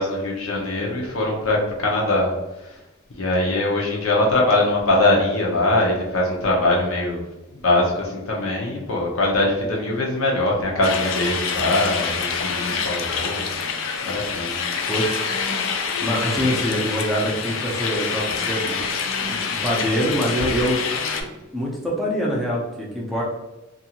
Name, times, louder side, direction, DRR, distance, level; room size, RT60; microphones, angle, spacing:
voice 1, 0.0-2.3 3.2-7.2 7.5-13.5 14.0-14.6, left 2 dB, 85° left, -2 dB, 0.7 m, -22 dB
sound 1, 10.8-21.2, left 5 dB, 65° left, 0.3 m, -26 dB
voice 2, 14.9-15.3 16.0-18.9 19.2-20.8 21.5-23.2, equal, ahead, -5 dB, 0.5 m, -24 dB
2.6 x 2.4 x 2.8 m, 1.0 s
head